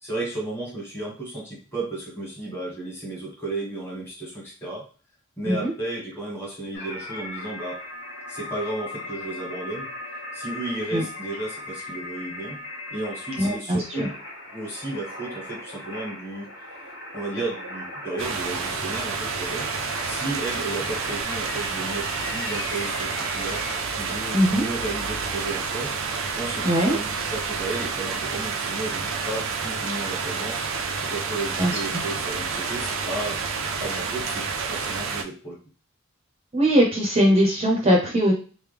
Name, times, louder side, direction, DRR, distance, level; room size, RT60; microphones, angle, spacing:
voice 1, 0.0-4.8 5.4-7.8 8.3-9.9 10.3-12.6 12.9-14.2 14.5-16.5 17.1-19.7 20.0-22.1 22.3-23.7 24.0-25.9 26.2-33.4 33.8-35.6, right 2 dB, 10° left, -3 dB, 1.4 m, -33 dB
sound 1, 6.7-23.8, left 2 dB, 75° left, 1.5 m, -38 dB
voice 2, 13.4-14.1 24.3-24.6 26.6-27.0 31.6-31.7 36.5-38.3, equal, 30° right, 0 dB, 0.6 m, -20 dB
sound 2, 18.2-35.2, right 5 dB, 80° right, 0.5 m, -29 dB
3.2 x 2.2 x 3.3 m, 0.37 s
head